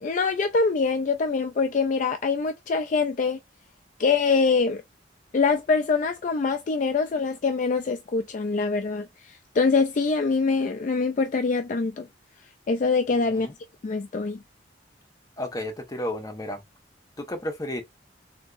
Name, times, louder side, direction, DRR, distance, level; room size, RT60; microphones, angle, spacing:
voice 1, 0.0-3.4 4.0-4.8 5.3-12.1 12.7-13.5 13.8-14.4, left 4 dB, 40° left, 0.3 m, -24 dB
voice 2, 13.1-13.5 15.4-16.6 17.2-17.8, left 1 dB, 20° left, 0.9 m, -32 dB
3.5 x 2.8 x 2.5 m
head